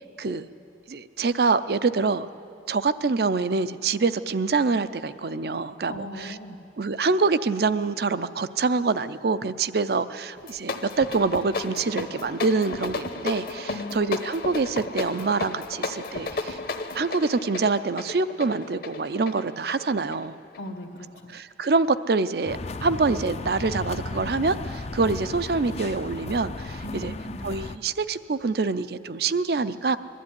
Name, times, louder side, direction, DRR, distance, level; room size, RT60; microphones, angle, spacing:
voice 1, 0.9-2.3 2.7-6.3 6.8-16.6 16.9-20.3 21.3-27.1 27.4-30.0, right 4 dB, 55° right, 14 dB, 0.5 m, -25 dB
voice 2, 5.9-6.6 13.7-14.1 20.6-21.4 26.8-27.4, left 1 dB, 85° left, -4 dB, 1.3 m, -38 dB
sound 1, 10.4-20.7, left 3 dB, 55° left, 1.0 m, -34 dB
sound 2, 22.5-27.8, left 3 dB, 35° left, 0.5 m, -35 dB
21.0 x 13.0 x 9.7 m, 2.7 s
head